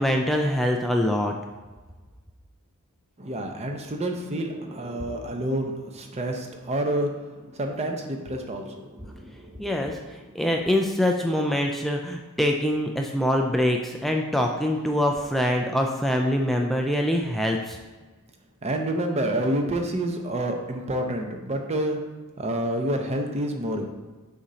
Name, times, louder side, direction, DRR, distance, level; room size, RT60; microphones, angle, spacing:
voice 1, 0.0-1.3 9.6-17.8, left 1 dB, ahead, 1 dB, 0.4 m, -24 dB
voice 2, 3.2-9.7 18.6-22.0 22.4-23.9, right 1 dB, 30° right, 3 dB, 0.7 m, -28 dB
7.1 x 2.8 x 5.0 m, 1.3 s
head